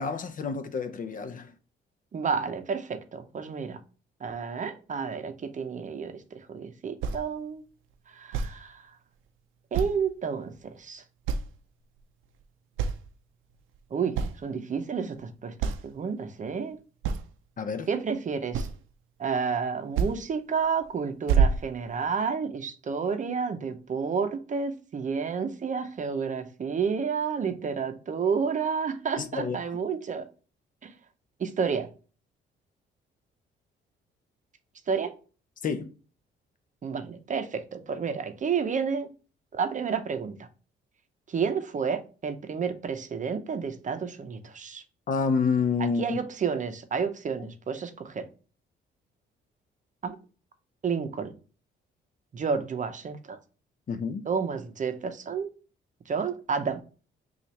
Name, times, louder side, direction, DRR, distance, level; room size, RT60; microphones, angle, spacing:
voice 1, 0.0-1.5 17.6-17.9 29.2-29.6 35.6-35.9 45.1-46.2 53.9-54.2, left 5 dB, 45° left, 0.6 m, -28 dB
voice 2, 2.1-3.8 4.2-7.6 8.1-8.8 9.7-11.0 13.9-16.8 17.9-18.7 19.2-30.3 30.8-30.9 31.4-31.9 34.9-35.1 36.8-39.1 39.5-40.4 41.3-44.8 45.8-48.3 50.0-50.2 50.8-51.3 52.3-53.4 54.3-55.5 56.1-56.8, right 6 dB, 40° right, 0.6 m, -30 dB
sound 1, 7.0-7.2 8.3-8.5 9.7-10.1 10.6-10.7 11.2-11.6 12.0-12.4 12.8-13.1 13.7-13.8 14.1-14.4 15.2-15.3 15.6-15.8 17.0-17.3 18.5-18.9 19.9-20.2 20.6-20.9 21.3-22.2, right 6 dB, 90° right, 0.5 m, -26 dB
5.6 x 2.4 x 3.1 m
cardioid pair, 90°, 20 cm